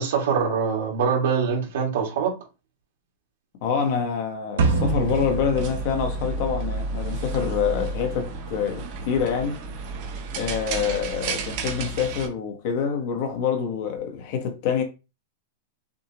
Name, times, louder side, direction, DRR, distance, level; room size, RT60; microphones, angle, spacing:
voice 1, 0.0-2.3, right 6 dB, 60° right, 2.1 m, -23 dB
voice 2, 3.6-9.6 10.3-14.8, left 7 dB, 40° left, 1.2 m, -26 dB
sound 1, 4.6-7.0, right 4 dB, 80° right, 1.4 m, -25 dB
sound 2, 4.7-12.3, right 3 dB, 40° right, 1.5 m, -32 dB
6.3 x 2.6 x 3.0 m
supercardioid pair, 170°, 0 cm